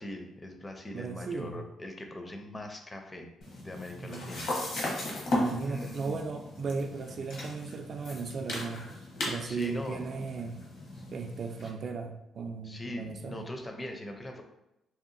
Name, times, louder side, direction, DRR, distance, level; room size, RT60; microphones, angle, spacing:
voice 1, 0.0-3.3 3.6-4.5 5.6-6.2 9.4-10.1 11.6-11.7 12.6-14.4, left 1 dB, 20° left, 4 dB, 0.4 m, -41 dB
voice 2, 0.9-1.6 4.0-4.5 5.4-8.9 9.2-10.6 11.1-13.5, right 4 dB, 50° right, 6 dB, 0.3 m, -36 dB
sound 1, 3.4-11.7, left 1 dB, 75° left, 0.9 m, -36 dB
2.7 x 2.2 x 2.5 m, 0.89 s
cardioid pair, 90°, 0 cm